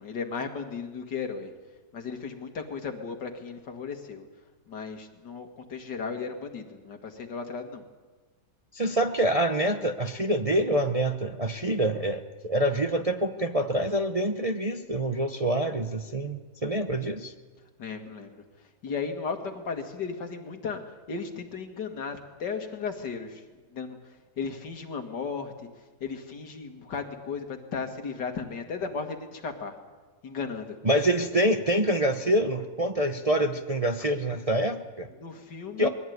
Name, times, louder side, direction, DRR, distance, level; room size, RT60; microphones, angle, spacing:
voice 1, 0.0-1.5 1.9-4.3 4.7-7.9 17.8-18.4 18.8-20.8 21.1-23.4 23.7-24.0 24.4-25.7 26.0-29.7 30.2-30.8 35.2-35.9, left 5 dB, 80° left, 5 dB, 2.6 m, -35 dB
voice 2, 8.7-17.3 30.8-35.1 35.8-35.9, right 1 dB, 30° right, 5 dB, 0.7 m, -26 dB
21.5 x 16.0 x 9.5 m, 1.3 s
omnidirectional pair, 1.8 m